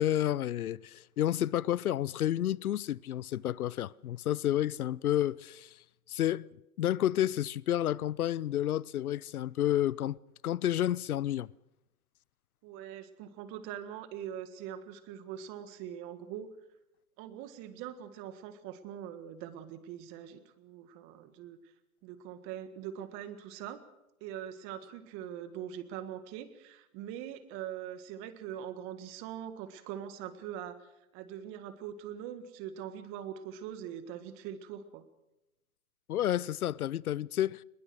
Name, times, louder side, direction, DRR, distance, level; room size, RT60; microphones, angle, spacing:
voice 1, 0.0-5.7 6.1-6.5 6.8-10.2 10.4-11.5 36.1-37.6, left 12 dB, 90° left, 0.7 m, -30 dB
voice 2, 12.6-16.5 17.2-21.6 22.0-23.8 24.2-35.0, right 10 dB, 30° right, 1.7 m, -42 dB
21.5 x 20.0 x 6.3 m
hypercardioid pair, 140°, 43 cm